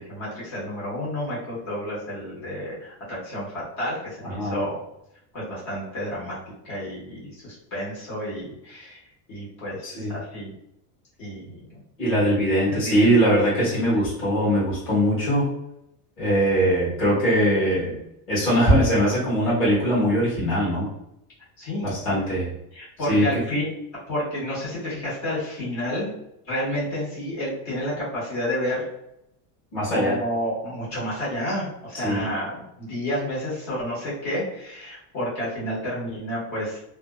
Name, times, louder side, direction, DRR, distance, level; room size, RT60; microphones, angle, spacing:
voice 1, 0.0-4.8 5.3-6.4 6.6-9.0 9.3-10.5 11.2-11.6 12.7-13.1 21.6-21.9 22.7-23.7 24.1-26.1 26.4-28.8 29.9-36.8, equal, 45° left, -8 dB, 1.3 m, -30 dB
voice 2, 4.3-4.6 9.8-10.1 12.0-15.5 16.2-18.0 18.3-20.9 21.8-22.5 23.1-23.4 29.7-30.2 32.0-32.2, equal, 25° left, -9 dB, 1.2 m, -21 dB
2.5 x 2.1 x 2.3 m, 0.81 s
cardioid pair, 175°, 47 cm